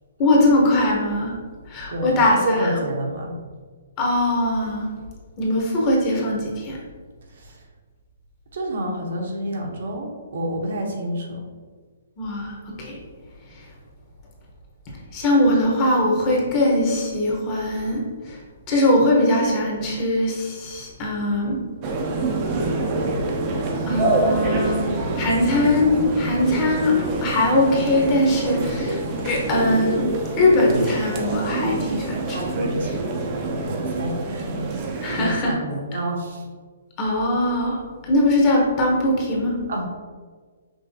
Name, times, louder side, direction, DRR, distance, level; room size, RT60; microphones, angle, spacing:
voice 1, 0.2-1.3 1.7-2.7 4.0-4.9 5.4-6.8 12.2-13.0 15.1-18.0 18.3-18.4 18.7-21.6 23.9-26.9 27.2-30.0 30.4-32.4 35.0-35.6 37.0-39.6, left 1 dB, 25° left, -3 dB, 1.0 m, -21 dB
voice 2, 1.9-3.4 7.4-7.5 8.5-11.4 32.3-33.0 33.6-34.5 35.1-36.4 39.7-39.9, equal, 65° right, 0 dB, 1.0 m, -28 dB
sound 1, 21.8-35.3, right 2 dB, 30° right, 0.6 m, -26 dB
5.5 x 3.2 x 2.8 m, 1.5 s
hypercardioid pair, 160°, 0 cm